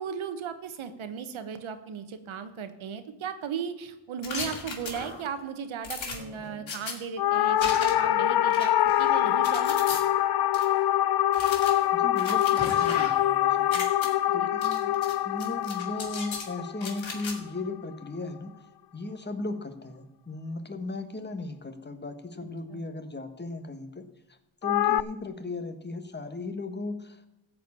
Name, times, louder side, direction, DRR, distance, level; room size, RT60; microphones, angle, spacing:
voice 1, 0.0-9.8 22.7-22.9, right 7 dB, 85° right, 10 dB, 1.2 m, -36 dB
sound 1, 4.2-5.3 5.8-6.9 7.6-8.1 8.5-10.0 10.5-10.6 11.3-13.3 13.6-14.1 14.6-15.1 15.4-16.5 16.8-17.3, left 4 dB, 75° left, 2.4 m, -37 dB
sound 2, 7.2-17.7 24.6-25.0, left 12 dB, 55° left, 0.5 m, -25 dB
voice 2, 11.9-14.0 14.3-14.9 15.2-18.7 18.9-27.3, left 2 dB, 20° left, 8 dB, 1.4 m, -36 dB
14.0 x 4.9 x 8.6 m, 0.91 s
cardioid pair, 65°, 46 cm